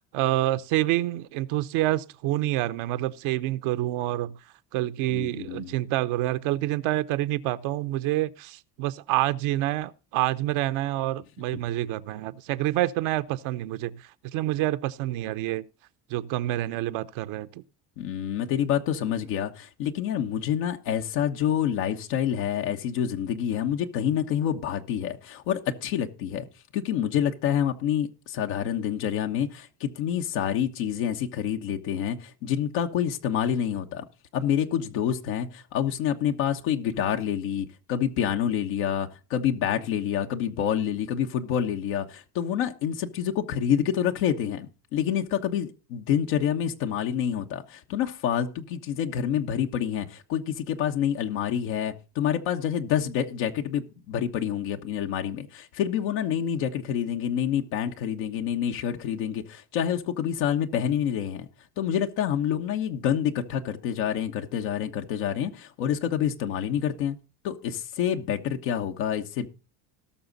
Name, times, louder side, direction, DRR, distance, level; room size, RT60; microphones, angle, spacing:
voice 1, 0.0-4.4 4.7-15.6 16.1-17.6, right 15 dB, 75° right, 0.9 m, -27 dB
voice 2, 5.1-5.7 18.0-26.5 26.7-34.0 34.3-61.5 61.8-67.2 67.4-69.5, left 9 dB, 85° left, 1.3 m, -27 dB
18.5 x 6.3 x 4.0 m
supercardioid pair, 85°, 50 cm